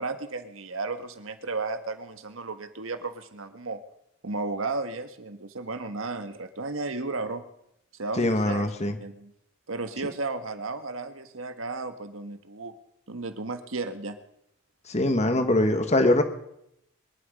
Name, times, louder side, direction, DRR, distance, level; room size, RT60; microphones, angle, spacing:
voice 1, 0.0-3.8 4.2-7.4 7.9-8.7 9.0-9.3 9.7-12.7 13.1-14.2, right 3 dB, 85° right, 9 dB, 1.5 m, -34 dB
voice 2, 8.2-9.0 14.9-16.2, left 1 dB, 35° left, 7 dB, 1.7 m, -22 dB
23.5 x 11.5 x 5.3 m, 0.78 s
head